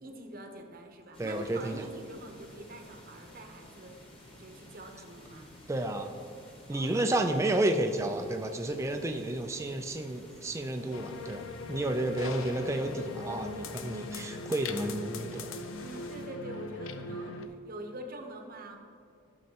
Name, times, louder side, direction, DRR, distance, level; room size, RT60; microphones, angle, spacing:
voice 1, 0.0-4.0 4.4-5.5 6.7-7.1 12.1-12.2 15.8-18.8, right 1 dB, 45° right, 4 dB, 0.9 m, -45 dB
sound 1, 1.1-16.3, left 1 dB, 25° left, 1.3 m, -53 dB
voice 2, 1.2-1.9 5.7-6.1 6.7-15.5, right 1 dB, 15° right, 4 dB, 0.3 m, -31 dB
sound 2, 10.9-17.5, left 3 dB, 65° left, 0.5 m, -40 dB
12.5 x 6.4 x 2.9 m, 2.4 s
head